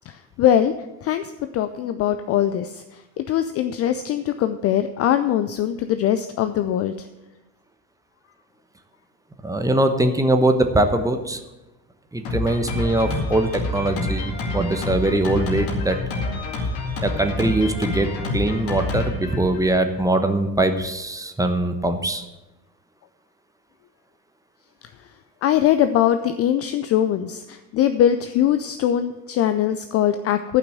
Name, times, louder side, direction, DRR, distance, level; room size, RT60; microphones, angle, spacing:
voice 1, 0.4-0.7 1.0-1.2 1.5-2.8 3.2-6.9 25.4-30.6, left 10 dB, 30° left, 10 dB, 0.5 m, -21 dB
voice 2, 9.4-11.4 12.1-16.0 17.0-22.2, right 1 dB, 5° right, 7 dB, 1.0 m, -22 dB
Drum kit, 12.2-20.0, left 2 dB, 60° left, 2.4 m, -27 dB
11.0 x 5.9 x 7.8 m, 1.0 s
figure-of-eight pair, 70°, 50 cm